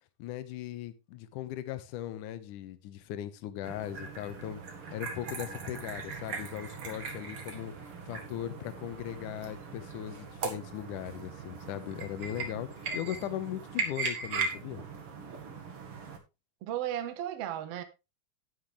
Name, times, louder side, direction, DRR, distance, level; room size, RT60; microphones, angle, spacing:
voice 1, 0.2-4.6 4.9-7.7 8.1-14.8, left 12 dB, 70° left, 2.2 m, -38 dB
sound 1, 3.6-16.2, right 4 dB, 45° right, 1.9 m, -39 dB
voice 2, 16.6-17.8, right 11 dB, 75° right, 1.4 m, -34 dB
11.5 x 9.5 x 3.3 m
omnidirectional pair, 4.5 m